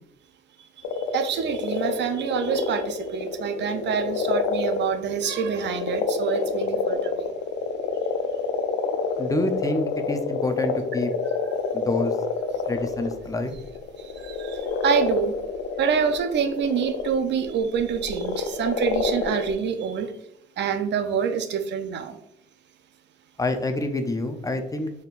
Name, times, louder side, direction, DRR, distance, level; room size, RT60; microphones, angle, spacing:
sound 1, 0.8-19.5, left 5 dB, 85° left, 0.5 m, -28 dB
voice 1, 1.1-7.3 14.2-15.3 15.8-20.1 20.6-22.2, right 7 dB, 60° right, 8 dB, 0.5 m, -26 dB
voice 2, 9.2-11.1 11.7-12.1 12.7-13.6 23.4-24.9, left 2 dB, 15° left, 6 dB, 0.5 m, -27 dB
4.2 x 3.6 x 2.4 m, 0.77 s
cardioid pair, 90°, 20 cm